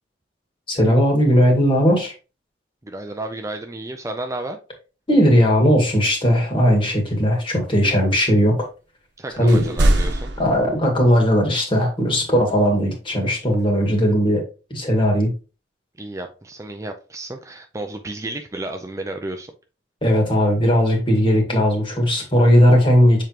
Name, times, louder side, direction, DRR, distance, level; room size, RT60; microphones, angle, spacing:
voice 1, 0.7-2.1 5.1-8.7 9.3-9.6 10.4-14.4 14.7-15.3 20.0-23.2, equal, 30° left, 1 dB, 2.0 m, -17 dB
voice 2, 2.8-4.6 9.2-10.3 16.0-19.5, right 2 dB, 20° right, 5 dB, 0.5 m, -32 dB
sound 1, 9.5-11.1 13.6-13.7, right 1 dB, 90° right, 1.0 m, -21 dB
7.1 x 4.6 x 2.9 m, 0.33 s
head